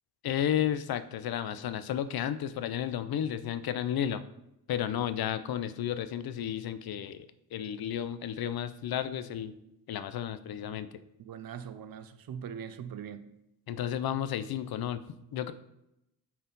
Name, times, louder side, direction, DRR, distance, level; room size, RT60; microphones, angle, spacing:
voice 1, 0.2-4.2 4.7-7.3 7.5-9.5 9.9-10.9 13.7-15.0 15.3-15.5, left 10 dB, 70° left, 0.6 m, -32 dB
voice 2, 11.2-13.3, right 8 dB, 65° right, 0.6 m, -41 dB
8.6 x 4.2 x 4.0 m
wide cardioid pair, 135°, 38 cm